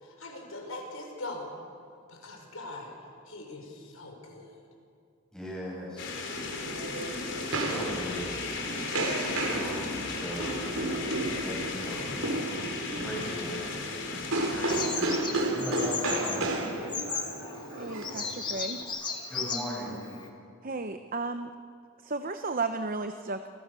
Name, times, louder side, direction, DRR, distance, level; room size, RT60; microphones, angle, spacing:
voice 1, 0.0-1.5 2.1-3.0 3.3-4.6 6.6-7.0, left 2 dB, 70° left, 2 dB, 5.8 m, -42 dB
voice 2, 5.3-6.3 6.8-6.9 7.5-8.3 9.2-12.2 13.0-13.6 14.5-16.6 19.3-20.0, equal, 5° left, -4 dB, 8.0 m, -38 dB
sound 1, 6.0-14.9, left 3 dB, 55° left, 4.3 m, -35 dB
sound 2, 6.3-18.8, right 2 dB, 75° right, 4.8 m, -33 dB
Bird vocalization bird call bird song, 14.7-20.3, left 5 dB, 20° left, 2.3 m, -36 dB
voice 3, 17.8-18.8 20.6-21.5 22.0-23.6, right 3 dB, 40° right, 8 dB, 0.8 m, -34 dB
30.0 x 26.0 x 6.9 m, 2.4 s
head